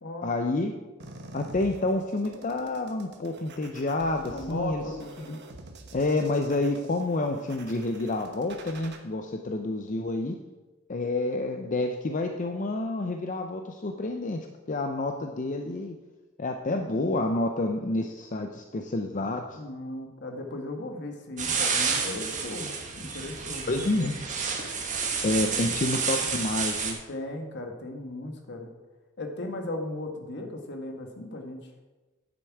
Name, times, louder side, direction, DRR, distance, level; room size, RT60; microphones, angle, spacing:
voice 1, 0.2-0.7 1.3-4.8 5.3-5.4 5.9-10.3 10.9-15.9 16.4-19.5 23.7-24.1 25.2-27.0, left 2 dB, 40° left, 5 dB, 0.6 m, -29 dB
sound 1, 1.0-9.0, right 2 dB, 55° right, 1.1 m, -47 dB
voice 2, 4.3-5.1 19.5-23.8 27.1-28.7 29.2-31.7, left 2 dB, 60° left, 4 dB, 1.4 m, -36 dB
sound 2, 21.4-26.9, right 5 dB, 40° right, 1.4 m, -30 dB
9.7 x 7.9 x 4.7 m, 1.2 s
head